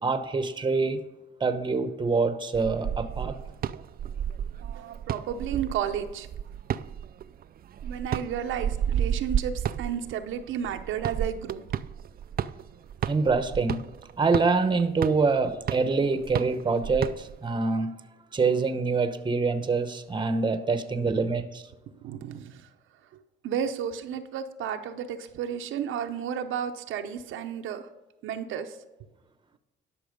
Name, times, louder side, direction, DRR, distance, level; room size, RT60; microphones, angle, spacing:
voice 1, 0.0-1.0 1.4-3.3 13.1-13.8 14.2-17.9 18.3-21.6, right 4 dB, 25° right, 10 dB, 0.9 m, -25 dB
sound 1, 2.5-17.5, right 9 dB, 50° right, 0.4 m, -32 dB
voice 2, 4.6-6.3 7.8-11.6 21.2-21.3 22.0-22.7 23.4-27.9 28.2-28.8, right 8 dB, 85° right, 6 dB, 0.8 m, -32 dB
11.5 x 6.0 x 5.1 m, 1.0 s
cardioid pair, 90°, 20 cm